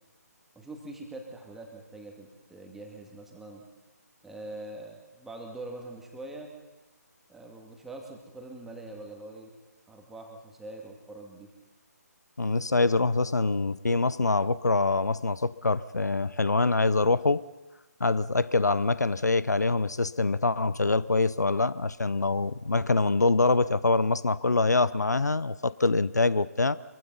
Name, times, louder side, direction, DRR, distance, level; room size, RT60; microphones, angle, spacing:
voice 1, 0.6-3.6 4.2-6.5 7.3-9.5 9.9-11.5, right 2 dB, 5° right, 1 dB, 2.2 m, -43 dB
voice 2, 12.4-17.4 18.0-26.8, left 3 dB, 80° left, 18 dB, 0.7 m, -25 dB
25.0 x 23.5 x 5.6 m, 1.1 s
figure-of-eight pair, 145°, 9 cm